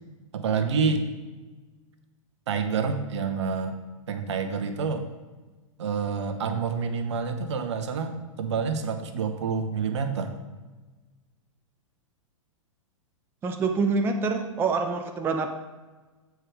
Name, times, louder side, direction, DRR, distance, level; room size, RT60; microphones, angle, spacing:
voice 1, 0.3-1.0 2.5-3.8 4.1-5.0 5.8-10.4, right 5 dB, 55° right, 7 dB, 0.9 m, -28 dB
voice 2, 13.4-15.5, right 4 dB, 10° right, 5 dB, 0.4 m, -26 dB
7.9 x 4.7 x 4.9 m, 1.2 s
figure-of-eight pair, 105°, 17 cm